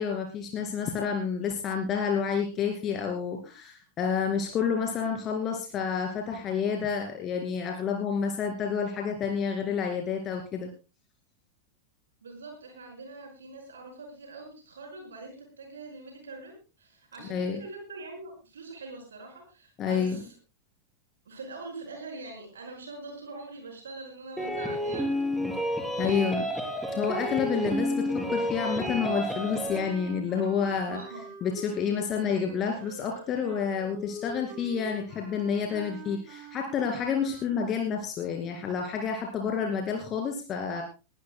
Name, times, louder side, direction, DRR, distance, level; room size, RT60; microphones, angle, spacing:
voice 1, 0.0-10.7 17.3-17.6 19.8-20.2 26.0-26.4 26.9-31.0 31.4-40.8, left 6 dB, 30° left, 3 dB, 2.4 m, -29 dB
voice 2, 12.2-20.4 21.3-25.5 26.0-26.4 30.3-30.4 30.9-31.3, right 3 dB, 70° right, 3 dB, 5.2 m, -43 dB
sound 1, 24.4-29.8, equal, ahead, 3.5 m, -30 dB
sound 2, 28.5-38.0, equal, 45° right, 5.8 m, -45 dB
20.5 x 17.0 x 2.2 m, 0.31 s
figure-of-eight pair, 90°, 0 cm